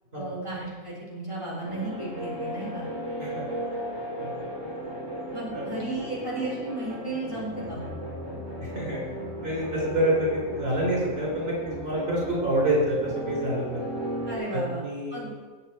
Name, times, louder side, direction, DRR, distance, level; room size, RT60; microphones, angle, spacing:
voice 1, 0.1-2.9 5.3-7.9 14.3-14.8 15.1-15.3, right 2 dB, 20° left, -6 dB, 3.9 m, -34 dB
sound 1, 1.6-14.3, equal, 15° right, 3.5 m, -35 dB
voice 2, 8.6-9.0 9.4-13.8 14.5-15.3, right 1 dB, 45° right, -4 dB, 4.6 m, -27 dB
19.0 x 8.0 x 4.6 m, 1.4 s
omnidirectional pair, 1.5 m